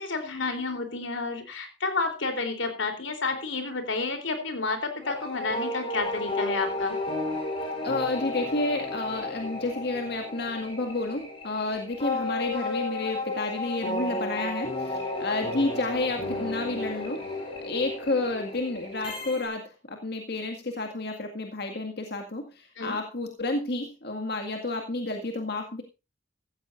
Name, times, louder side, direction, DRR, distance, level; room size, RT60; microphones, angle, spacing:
voice 1, 0.0-7.0 22.8-23.0, left 3 dB, 85° left, 6 dB, 3.5 m, -30 dB
sound 1, 5.0-19.5, left 2 dB, 30° left, 5.2 m, -33 dB
voice 2, 7.8-17.2 17.6-25.8, left 2 dB, 60° left, 4 dB, 2.0 m, -30 dB
15.5 x 14.5 x 2.6 m, 0.29 s
head